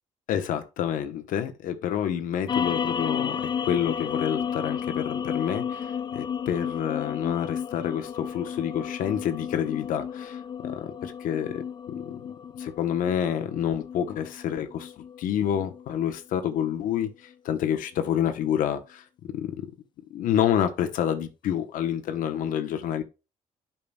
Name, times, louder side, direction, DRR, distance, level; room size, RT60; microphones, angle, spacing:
voice 1, 0.3-3.4 3.6-12.2 12.6-14.9 15.2-17.1 17.4-19.0 19.3-19.5 20.1-23.0, left 9 dB, 80° left, 0.9 m, -28 dB
sound 1, 2.5-17.0, left 7 dB, 35° left, 0.3 m, -33 dB
8.7 x 5.8 x 2.3 m
cardioid pair, 120°, 14 cm